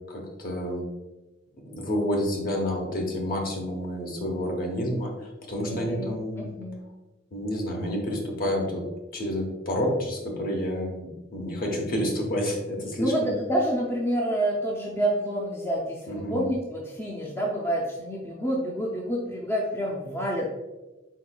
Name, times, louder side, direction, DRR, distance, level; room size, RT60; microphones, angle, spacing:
voice 1, 0.1-0.9 1.7-5.1 5.5-6.4 7.3-8.8 9.1-13.3 16.1-16.4, equal, 50° left, 1 dB, 0.9 m, -29 dB
voice 2, 5.6-6.8 13.0-20.5, equal, 15° left, -2 dB, 0.5 m, -28 dB
4.5 x 4.1 x 2.3 m, 1.1 s
head